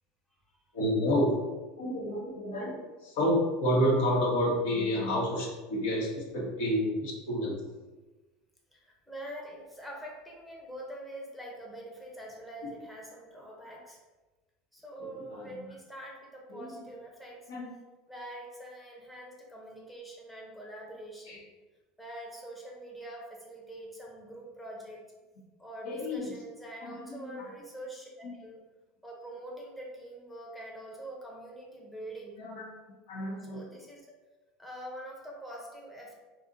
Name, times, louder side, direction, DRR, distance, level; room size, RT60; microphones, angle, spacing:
voice 1, 0.7-1.3 1.8-7.6 15.0-15.6 16.5-16.7 17.5-17.7 21.3-21.4 25.8-26.3 26.8-27.5 28.2-28.3 32.4-32.6 33.1-33.6, equal, 75° left, -3 dB, 1.0 m, -30 dB
voice 2, 8.7-14.0 14.7-17.5 18.1-21.4 22.0-25.0 25.6-28.6 29.0-32.4 33.5-34.1 34.6-36.1, right 1 dB, 5° left, -3 dB, 0.7 m, -44 dB
2.7 x 2.4 x 3.9 m, 1.2 s
supercardioid pair, 110°, 0 cm